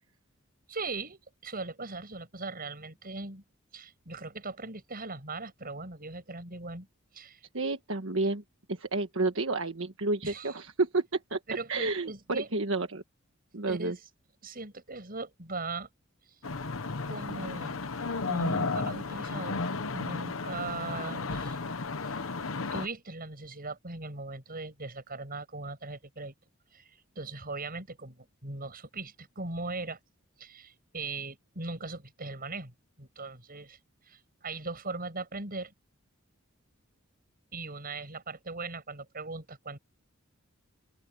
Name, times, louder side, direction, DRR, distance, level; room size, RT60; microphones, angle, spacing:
voice 1, 0.7-3.4 3.7-6.9 7.1-7.4 10.2-10.6 11.5-12.5 13.7-14.1 14.4-15.9 16.3-16.4 17.1-17.8 18.3-19.6 19.9-21.6 22.0-22.2 22.7-26.3 26.7-30.0 30.4-33.8 34.0-35.7 37.5-39.8, right 3 dB, 45° right, 7.6 m, -39 dB
voice 2, 7.5-8.4 8.7-11.0 11.3-11.4 11.7-13.0 13.5-13.9, right 3 dB, 70° right, 1.6 m, -30 dB
sound 1, 16.4-22.9, left 3 dB, 75° left, 1.1 m, -33 dB
head